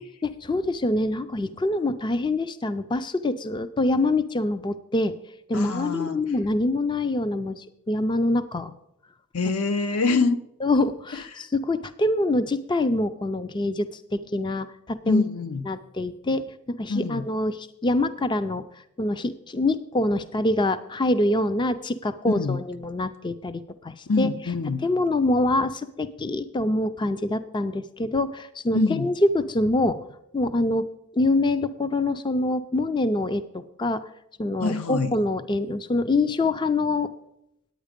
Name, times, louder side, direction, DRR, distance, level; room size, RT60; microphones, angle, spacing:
voice 1, 0.2-5.1 5.5-8.7 10.6-15.2 15.7-24.3 24.8-30.0 30.3-30.9 31.2-34.0 34.4-37.1, left 2 dB, 20° left, 12 dB, 0.4 m, -25 dB
voice 2, 5.5-6.2 9.3-10.4 11.1-11.5 15.0-15.6 16.9-17.2 22.3-22.6 24.1-24.8 28.7-29.1 34.6-35.1, left 3 dB, 75° left, 11 dB, 0.7 m, -25 dB
10.0 x 8.9 x 5.1 m, 0.82 s
head